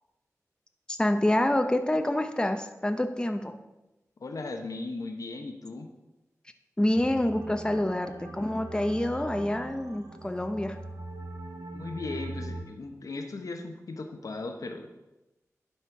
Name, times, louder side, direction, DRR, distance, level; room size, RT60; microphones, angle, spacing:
voice 1, 0.9-3.5 6.8-10.8, left 1 dB, 15° left, 7 dB, 0.7 m, -27 dB
voice 2, 4.2-5.9 11.7-14.9, left 3 dB, 80° left, 5 dB, 0.9 m, -37 dB
sound 1, 6.9-12.6, right 2 dB, 80° right, 1.0 m, -41 dB
11.5 x 4.4 x 4.7 m, 0.99 s
wide cardioid pair, 60°, 6 cm